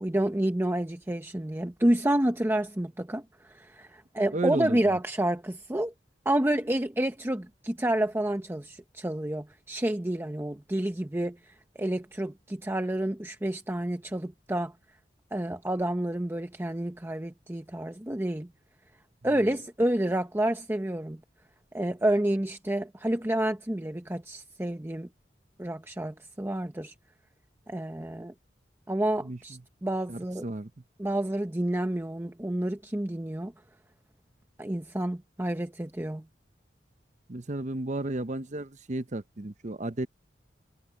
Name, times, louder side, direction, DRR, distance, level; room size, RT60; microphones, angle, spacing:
voice 1, 0.0-5.9 6.3-14.7 15.3-18.5 19.2-21.2 21.7-25.1 25.6-26.9 27.7-28.3 28.9-30.4 31.0-33.5 34.6-36.2, right 1 dB, 15° right, 0.7 m, -29 dB
voice 2, 4.3-5.0 19.4-19.5 29.2-29.6 30.1-30.7 37.3-40.1, right 2 dB, 40° right, 0.9 m, -33 dB
head